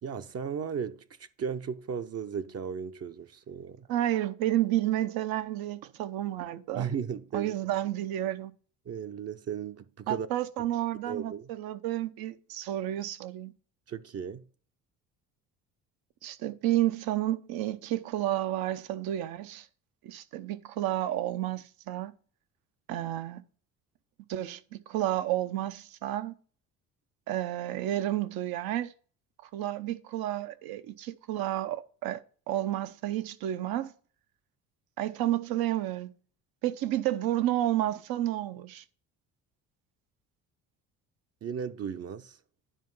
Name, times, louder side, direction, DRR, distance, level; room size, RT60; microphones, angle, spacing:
voice 1, 0.0-3.9 6.7-7.5 8.9-10.3 11.1-11.5 13.9-14.5 41.4-42.4, right 7 dB, 40° right, 0.7 m, -36 dB
voice 2, 3.9-6.9 7.3-8.5 10.1-13.5 16.2-19.7 20.0-22.1 22.9-23.4 24.3-24.6 24.9-26.3 27.3-28.9 29.4-32.2 32.5-33.9 35.0-36.1 36.6-38.8, right 13 dB, 70° right, 0.9 m, -31 dB
10.0 x 4.5 x 5.5 m
hypercardioid pair, 65°, 37 cm